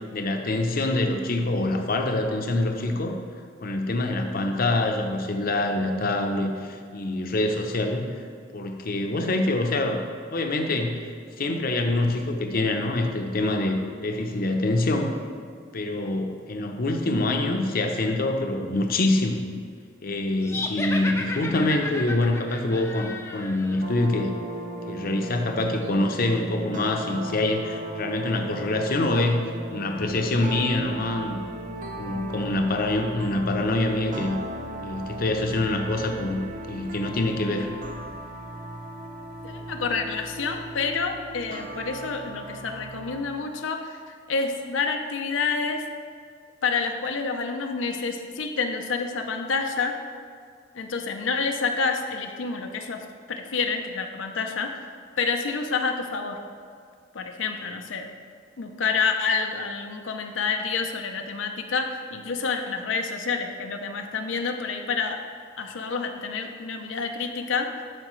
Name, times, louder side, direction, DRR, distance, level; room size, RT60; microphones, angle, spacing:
voice 1, 0.1-3.1 3.6-8.1 8.5-10.0 10.3-11.1 11.4-15.1 15.7-19.5 20.0-24.3 24.9-31.4 32.0-34.4 34.8-36.4 36.7-37.7, left 2 dB, 50° left, 4 dB, 0.7 m, -25 dB
sound 1, 20.4-23.8, left 2 dB, 15° left, 0.5 m, -33 dB
sound 2, 23.8-43.2, right 1 dB, 45° right, 0.6 m, -37 dB
voice 2, 39.4-44.0 44.3-45.9 46.6-50.0 50.7-54.8 55.2-56.4 57.1-58.1 58.6-65.2 65.6-67.7, left 4 dB, 85° left, 4 dB, 0.6 m, -28 dB
11.0 x 4.9 x 3.1 m, 2.1 s
head